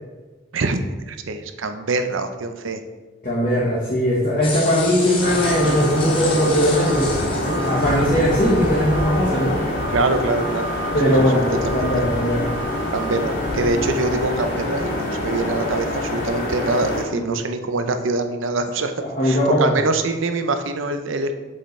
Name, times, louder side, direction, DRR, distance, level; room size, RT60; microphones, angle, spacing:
voice 1, 1.1-2.8 9.9-10.7 11.0-11.3 11.7-11.8 12.9-18.9 19.2-21.3, right 3 dB, 80° right, 7 dB, 0.6 m, -24 dB
voice 2, 3.2-7.1 7.4-9.6 10.9-12.5 17.1-17.3 19.1-19.7, equal, 45° left, -8 dB, 1.3 m, -19 dB
sound 1, 4.4-8.9, left 3 dB, 25° left, 1.0 m, -32 dB
sound 2, 5.2-17.0, left 1 dB, 65° left, 2.0 m, -25 dB
7.7 x 6.5 x 3.2 m, 1.3 s
head